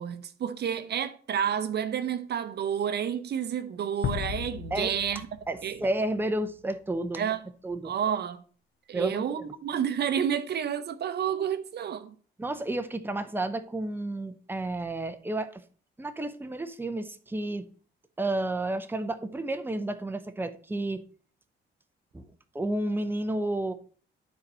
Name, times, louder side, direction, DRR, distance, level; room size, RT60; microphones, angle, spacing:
voice 1, 0.0-5.3 5.6-5.8 7.2-7.5 7.8-8.4 8.9-12.1, right 8 dB, 55° right, 0.7 m, -30 dB
sound 1, 4.0-6.5, left 10 dB, 65° left, 0.6 m, -35 dB
voice 2, 5.5-7.3 7.6-7.9 8.9-9.5 12.4-15.6 16.0-17.6 18.2-21.0 22.1-22.2 22.5-23.7, right 2 dB, 10° right, 0.8 m, -31 dB
9.6 x 4.3 x 5.4 m
cardioid pair, 90°, 20 cm